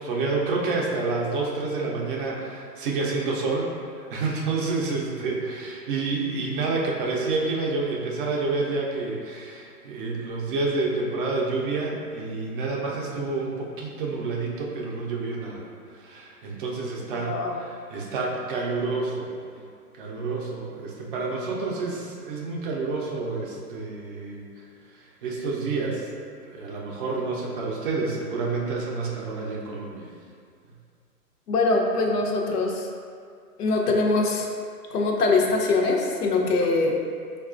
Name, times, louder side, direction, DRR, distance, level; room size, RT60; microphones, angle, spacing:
voice 1, 0.0-15.7 15.9-19.3 19.9-24.4 25.2-26.1 26.4-30.1, right 3 dB, 35° right, -2 dB, 0.5 m, -29 dB
voice 2, 17.1-17.5 31.5-32.9 33.6-34.5 34.9-37.0, left 3 dB, 70° left, 1 dB, 0.7 m, -23 dB
4.6 x 2.3 x 2.4 m, 2.2 s
hypercardioid pair, 130°, 48 cm